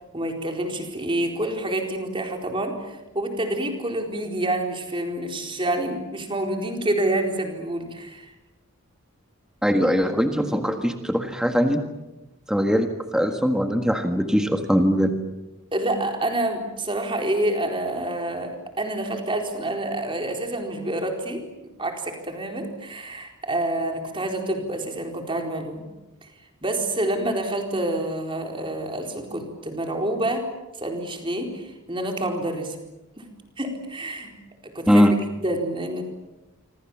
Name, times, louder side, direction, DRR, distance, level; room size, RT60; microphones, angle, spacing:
voice 1, 0.1-8.3 15.7-25.8 26.2-26.3 26.6-30.4 30.8-32.8 33.2-33.3 33.6-34.3 34.6-35.1 35.4-36.0, right 1 dB, 25° right, 3 dB, 4.3 m, -28 dB
voice 2, 9.6-11.8 12.5-12.9 13.1-15.1 34.9-35.1, equal, 5° right, 5 dB, 1.6 m, -21 dB
27.5 x 25.5 x 7.3 m, 1.0 s
head